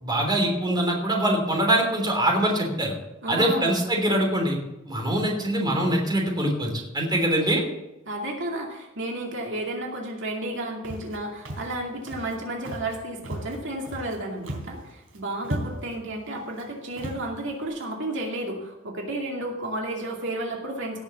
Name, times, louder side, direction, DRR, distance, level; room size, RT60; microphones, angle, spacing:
voice 1, 0.0-2.9 3.3-4.6 4.9-7.6, right 1 dB, 20° right, 1 dB, 3.0 m, -23 dB
voice 2, 3.2-3.8 8.1-21.0, right 1 dB, 65° right, 0 dB, 2.5 m, -32 dB
Walk footsteps, 10.8-11.2 11.5-11.8 12.1-12.4 12.7-13.0 13.2-14.2 14.4-14.8 15.1-15.2 15.4-16.0 16.5-16.6 17.0-17.2, right 1 dB, 80° right, 3.8 m, -35 dB
17.5 x 6.6 x 7.0 m, 0.98 s
head